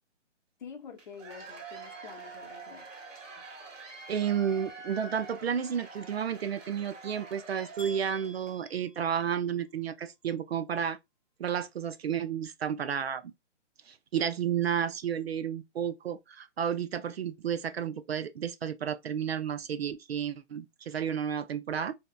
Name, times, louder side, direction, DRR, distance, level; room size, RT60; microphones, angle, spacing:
voice 1, 0.6-2.9 3.4-3.5, left 6 dB, 40° left, 0.7 m, -47 dB
Cheering / Applause / Crowd, 1.0-8.6, right 3 dB, 85° right, 1.4 m, -46 dB
voice 2, 4.1-11.0 11.4-13.3 13.9-22.0, right 8 dB, 55° right, 0.5 m, -32 dB
sound 1, 7.8-9.8, right 1 dB, ahead, 1.0 m, -49 dB
3.2 x 2.8 x 2.2 m
hypercardioid pair, 150°, 37 cm